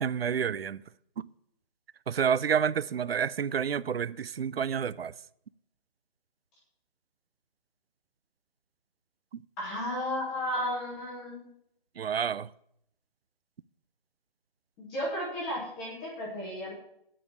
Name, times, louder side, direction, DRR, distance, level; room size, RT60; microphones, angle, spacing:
voice 1, 0.0-0.8 1.2-1.3 2.1-5.1 12.0-12.5, right 7 dB, 90° right, 0.6 m, -29 dB
voice 2, 9.6-11.5 14.8-16.7, left 1 dB, 5° left, 0.7 m, -33 dB
9.8 x 5.4 x 8.2 m
hypercardioid pair, 170°, 29 cm